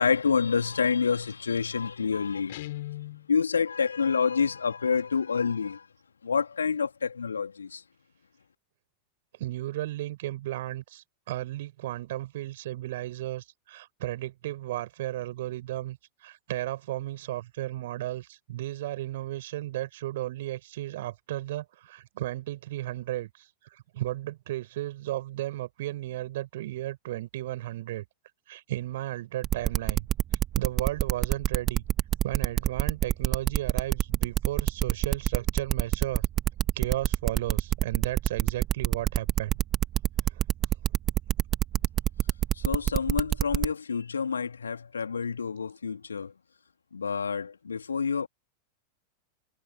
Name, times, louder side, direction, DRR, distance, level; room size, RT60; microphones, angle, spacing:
voice 1, 0.0-2.6 3.3-5.9 6.2-7.8 42.5-46.3 46.9-48.3, left 6 dB, 75° left, 3.3 m, -28 dB
Guitar, 2.5-3.3, left 16 dB, 55° left, 6.6 m, -37 dB
voice 2, 9.4-16.0 16.2-28.0 28.5-30.1 30.5-31.8 32.2-36.3 36.8-39.6 40.3-40.4, right 15 dB, 55° right, 6.0 m, -34 dB
sound 1, 29.4-43.7, right 12 dB, 30° right, 2.3 m, -25 dB
figure-of-eight pair, 90°, 0 cm